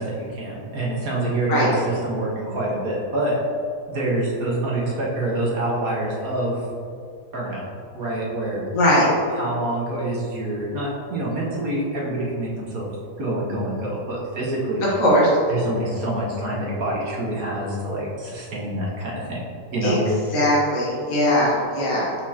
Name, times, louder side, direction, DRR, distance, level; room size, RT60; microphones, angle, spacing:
voice 1, 0.0-3.4 3.9-6.6 7.3-7.7 7.9-8.6 9.4-12.9 13.2-14.8 15.5-19.4 19.7-20.0, right 1 dB, 55° right, -5 dB, 1.7 m, -26 dB
voice 2, 8.7-9.1 14.9-15.3 19.8-20.0 20.3-22.2, equal, 55° left, -6 dB, 1.6 m, -19 dB
6.9 x 5.8 x 2.8 m, 2.5 s
omnidirectional pair, 1.8 m